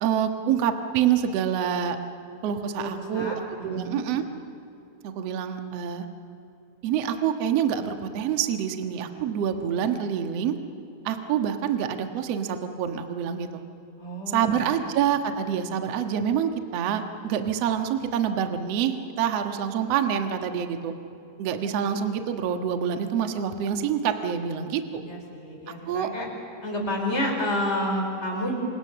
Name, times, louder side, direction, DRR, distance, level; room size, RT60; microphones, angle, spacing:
voice 1, 0.0-2.0 2.4-3.3 3.6-4.2 5.0-6.1 6.8-10.5 11.0-13.6 14.3-20.9 21.4-25.0 25.9-26.1, right 8 dB, 80° right, 6 dB, 1.4 m, -26 dB
voice 2, 2.8-3.3 3.7-4.0 14.0-14.6 25.1-26.3 26.6-28.5, left 1 dB, 15° left, 0 dB, 5.0 m, -29 dB
28.5 x 26.0 x 6.9 m, 2.8 s
omnidirectional pair, 5.4 m